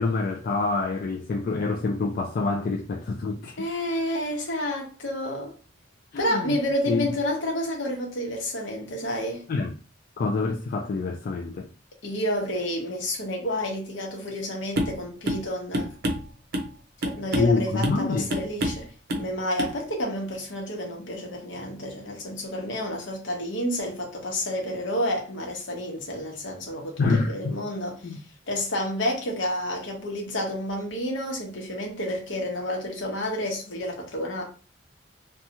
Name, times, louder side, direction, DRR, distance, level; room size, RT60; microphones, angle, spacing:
voice 1, 0.0-3.7 6.1-6.6 6.9-7.0 9.5-9.7 10.2-11.7 17.4-18.2 27.0-27.6 28.0-28.2, left 3 dB, 50° left, 0.3 m, -26 dB
voice 2, 3.6-5.5 6.2-9.4 12.0-15.9 17.0-18.9 19.1-28.2 28.5-34.4, left 1 dB, 70° left, 1.0 m, -30 dB
sound 1, 14.8-15.0 15.3-15.5 15.7-16.7 17.0-17.6 17.8-18.0 18.3-18.8 19.1-19.3 19.6-19.8, equal, 55° right, 0.6 m, -27 dB
2.7 x 2.3 x 2.8 m
head